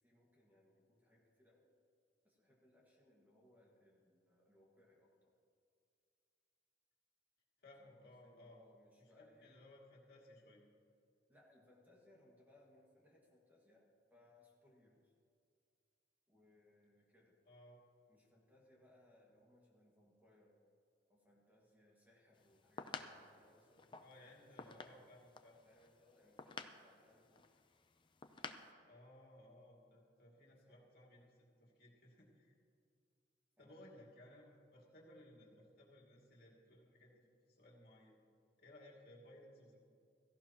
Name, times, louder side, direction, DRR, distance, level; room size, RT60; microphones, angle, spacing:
voice 1, 0.0-1.7 2.2-5.3 7.8-9.6 11.3-15.1 16.3-17.4 18.1-20.6 21.1-24.6 25.6-27.5 30.5-30.8 33.6-33.8, left 1 dB, 10° right, -3 dB, 1.8 m, -69 dB
voice 2, 7.6-8.6 9.0-10.6 17.4-17.8 24.0-25.6 28.9-32.5 33.6-38.2 38.6-39.8, left 1 dB, 55° left, -3 dB, 2.5 m, -61 dB
sound 1, 22.4-28.7, left 4 dB, 25° left, 0.5 m, -52 dB
16.5 x 15.0 x 3.0 m, 2.4 s
head